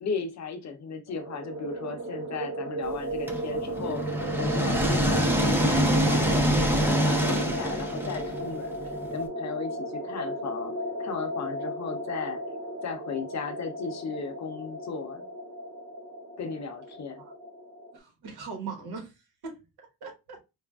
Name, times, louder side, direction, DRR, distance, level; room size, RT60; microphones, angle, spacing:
voice 1, 0.0-4.1 4.4-8.7 9.1-12.4 12.8-15.2 16.4-17.2, left 5 dB, 45° left, 0.6 m, -36 dB
sound 1, 1.1-18.0, equal, 45° right, 0.8 m, -35 dB
sound 2, 3.3-9.2, equal, 5° right, 0.4 m, -25 dB
voice 2, 17.9-19.1 19.4-20.4, right 5 dB, 75° right, 1.2 m, -40 dB
4.7 x 2.4 x 2.3 m
wide cardioid pair, 160°, 38 cm